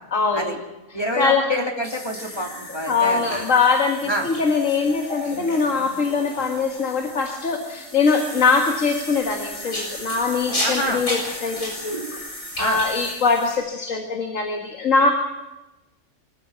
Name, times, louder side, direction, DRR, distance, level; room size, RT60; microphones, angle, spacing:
voice 1, 0.1-0.6 0.9-1.5 2.4-2.5 2.9-12.0 12.6-15.1, left 4 dB, 65° left, 4 dB, 2.2 m, -22 dB
voice 2, 0.9-3.2 4.1-4.3 10.6-11.0 12.6-12.8, equal, 20° left, 1 dB, 2.7 m, -26 dB
sound 1, 1.8-13.6, equal, 85° left, 7.9 m, -33 dB
24.0 x 15.0 x 9.3 m, 1.0 s
omnidirectional pair, 1.4 m